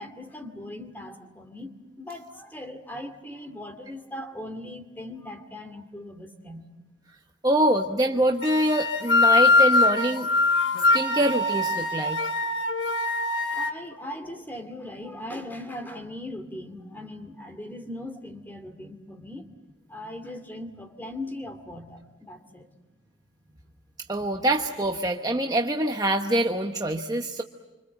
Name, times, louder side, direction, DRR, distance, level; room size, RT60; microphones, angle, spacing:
voice 1, 0.0-6.7 13.4-19.5 19.9-22.7, left 1 dB, 10° left, 6 dB, 2.3 m, -39 dB
voice 2, 7.4-10.3 10.9-12.2 24.1-27.4, right 1 dB, 20° right, 3 dB, 1.0 m, -24 dB
sound 1, 8.4-13.7, left 3 dB, 70° left, 1.2 m, -22 dB
27.5 x 25.5 x 8.0 m, 1.1 s
head